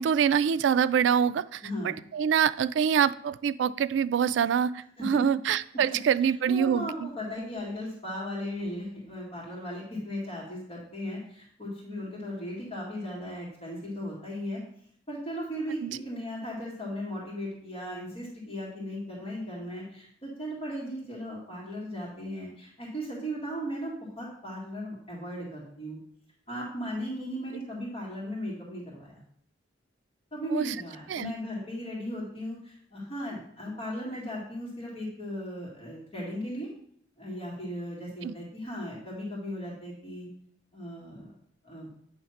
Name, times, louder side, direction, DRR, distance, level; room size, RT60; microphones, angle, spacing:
voice 1, 0.0-7.1 15.8-16.0 30.5-30.7 31.1-31.3 38.2-38.3, right 7 dB, 80° right, 16 dB, 0.3 m, -25 dB
voice 2, 1.6-1.9 5.0-5.2 5.9-14.6 15.1-26.0 26.5-29.2 30.3-36.7 37.2-40.3 40.7-41.3 41.6-41.9, equal, 35° left, -5 dB, 2.0 m, -37 dB
8.6 x 3.2 x 5.7 m, 0.65 s
head